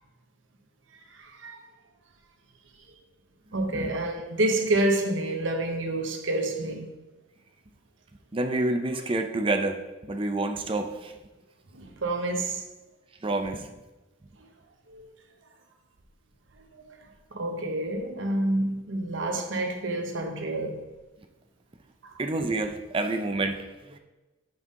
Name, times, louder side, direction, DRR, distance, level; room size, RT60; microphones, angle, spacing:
voice 1, 1.1-1.6 3.5-6.9 11.7-12.6 14.9-15.1 16.7-16.8 17.3-20.9 22.0-22.1, right 1 dB, 75° right, 0.9 m, -28 dB
voice 2, 3.5-3.9 8.3-9.8 10.0-11.1 13.2-13.7 22.2-24.0, right 2 dB, 25° right, 0.5 m, -28 dB
6.0 x 5.4 x 3.7 m
head